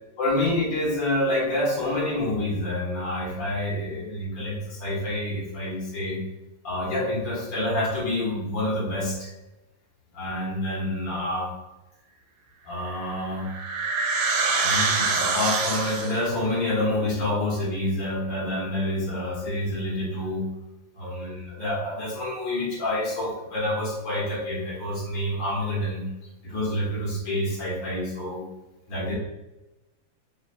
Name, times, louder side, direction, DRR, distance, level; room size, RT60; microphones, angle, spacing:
voice 1, 0.2-6.2 6.6-9.3 10.1-11.5 12.7-13.5 14.6-20.5 21.0-26.0 26.4-28.4 28.9-29.1, left 1 dB, 70° left, -4 dB, 2.1 m, -27 dB
sound 1, 12.9-16.3, right 4 dB, 80° right, 1.4 m, -25 dB
6.6 x 3.0 x 2.5 m, 1.0 s
omnidirectional pair, 2.2 m